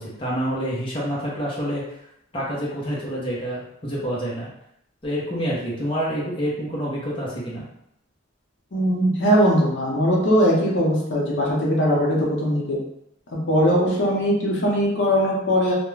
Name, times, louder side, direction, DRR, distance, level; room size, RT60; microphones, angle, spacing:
voice 1, 0.0-1.8 2.3-4.5 5.0-7.6, equal, 30° left, -6 dB, 0.7 m, -27 dB
voice 2, 8.7-12.8 13.5-15.7, equal, 70° left, -4 dB, 0.7 m, -20 dB
2.3 x 2.1 x 3.1 m, 0.77 s
head